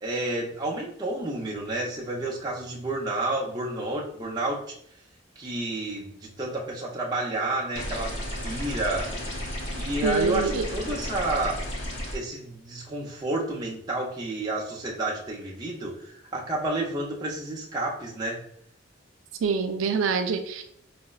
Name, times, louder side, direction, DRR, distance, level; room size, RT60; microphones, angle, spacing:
voice 1, 0.0-4.6 5.4-8.1 8.4-9.1 9.7-11.6 12.1-18.4, right 2 dB, 20° right, -3 dB, 0.5 m, -30 dB
sound 1, 7.8-12.2, equal, 65° left, 0.6 m, -33 dB
voice 2, 10.0-10.7 19.4-20.6, right 5 dB, 85° right, 7 dB, 0.4 m, -25 dB
4.8 x 2.0 x 2.3 m, 0.67 s
head